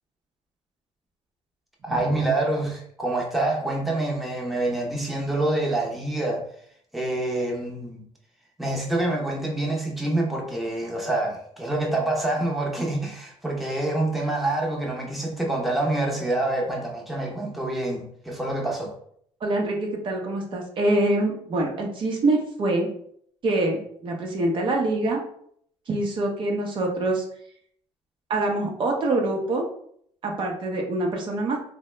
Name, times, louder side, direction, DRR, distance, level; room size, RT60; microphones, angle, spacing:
voice 1, 1.8-6.4 6.9-8.0 8.6-18.9, right 2 dB, ahead, -2 dB, 0.7 m, -26 dB
voice 2, 19.4-22.9 23.4-25.2 25.9-27.2 28.3-29.6 30.2-31.6, right 2 dB, 50° right, 0 dB, 0.7 m, -25 dB
2.7 x 2.1 x 3.2 m, 0.65 s
cardioid pair, 85°, 11 cm